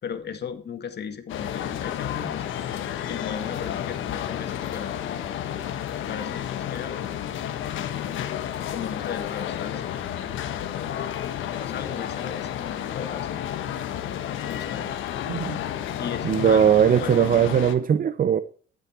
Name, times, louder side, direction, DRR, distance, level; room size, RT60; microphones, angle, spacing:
voice 1, 0.0-2.5 3.1-5.0 6.0-7.0 8.7-9.8 11.5-13.4 14.5-14.9 16.0-17.3, left 7 dB, 55° left, 2.0 m, -36 dB
sound 1, 1.3-17.7, left 10 dB, 80° left, 1.3 m, -31 dB
voice 2, 16.2-18.4, right 8 dB, 45° right, 0.6 m, -19 dB
13.0 x 7.6 x 4.4 m
cardioid pair, 90°, 20 cm